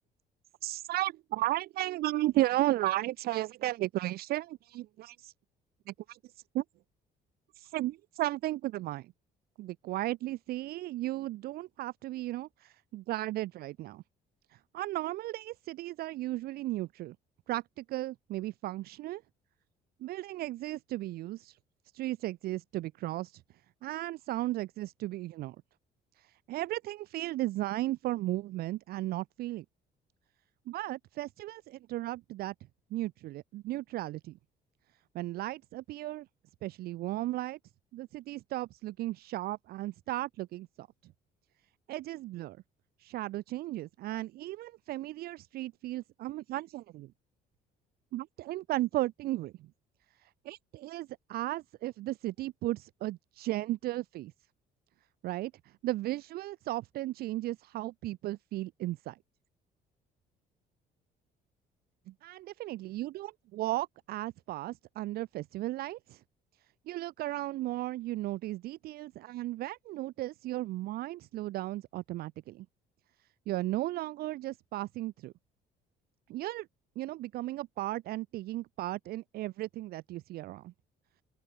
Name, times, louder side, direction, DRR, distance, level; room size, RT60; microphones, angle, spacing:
voice 1, 0.6-5.3 5.9-6.2 6.5-6.6 7.6-9.1 9.6-14.0 14.5-17.2 17.5-19.2 20.0-21.6 21.9-23.4 23.8-25.6 26.5-29.6 30.7-32.5 32.9-34.3 35.1-36.3 36.6-37.6 37.9-40.9 41.9-42.6 43.0-47.1 48.1-49.5 50.5-54.3 55.2-55.5 55.8-59.2 62.1-66.2 66.9-72.7 73.5-75.3 76.3-76.7 77.0-80.7, right 16 dB, 65° right, 0.4 m, -35 dB
open air
cardioid pair, 110°, 17 cm